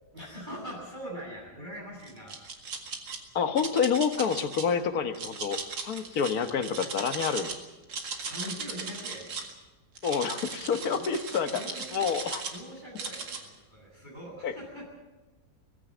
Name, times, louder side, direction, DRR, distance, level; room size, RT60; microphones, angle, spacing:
voice 1, 0.1-2.3 8.2-9.2 10.5-11.1 11.5-12.1 12.5-14.8, equal, 25° right, -2 dB, 8.2 m, -42 dB
sound 1, 2.0-3.2 3.6-4.6 5.1-7.6 7.8-9.5 10.0-12.6 13.0-13.4, right 5 dB, 85° right, 2.7 m, -37 dB
voice 2, 3.3-7.5 10.0-11.5 11.9-12.4 14.4-14.5, left 6 dB, 55° left, 8 dB, 1.7 m, -28 dB
18.5 x 16.0 x 9.0 m, 1.2 s
omnidirectional pair, 2.0 m